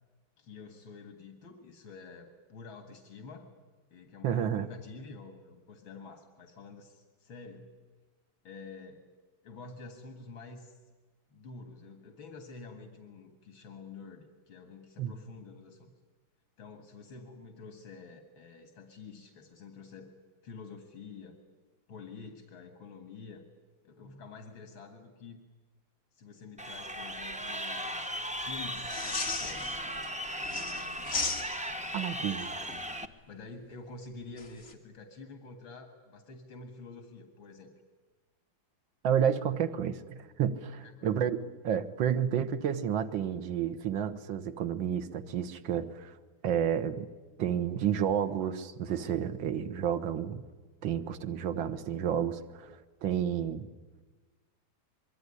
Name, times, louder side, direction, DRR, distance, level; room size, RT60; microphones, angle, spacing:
voice 1, 0.4-3.5 3.9-7.7 8.4-9.0 9.4-10.8 11.3-15.9 16.6-20.1 20.4-21.4 21.9-23.4 23.8-25.4 26.1-28.1 28.4-29.0 29.2-31.3 32.2-32.6 33.2-37.7 40.8-41.2, left 4 dB, 80° left, 6 dB, 2.7 m, -48 dB
voice 2, 4.2-4.7 15.0-15.1 31.9-32.5 39.0-41.4 41.6-46.2 46.4-47.1 47.4-50.4 50.8-53.7, right 9 dB, 75° right, 8 dB, 1.9 m, -30 dB
Crowd, 26.6-33.0, equal, 5° right, 0.7 m, -37 dB
sound 1, 28.8-30.1 30.4-31.9 34.4-34.7, left 3 dB, 35° left, 2.5 m, -36 dB
25.5 x 22.5 x 9.9 m, 1.3 s
omnidirectional pair, 2.2 m